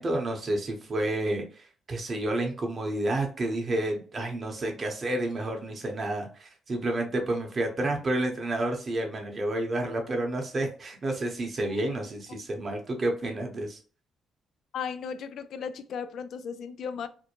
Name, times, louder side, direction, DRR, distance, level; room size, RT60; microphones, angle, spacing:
voice 1, 0.0-13.8, right 1 dB, 35° right, 0.8 m, -30 dB
voice 2, 14.7-17.1, left 6 dB, 70° left, 0.3 m, -36 dB
2.5 x 2.1 x 2.8 m
cardioid pair, 90°, 0 cm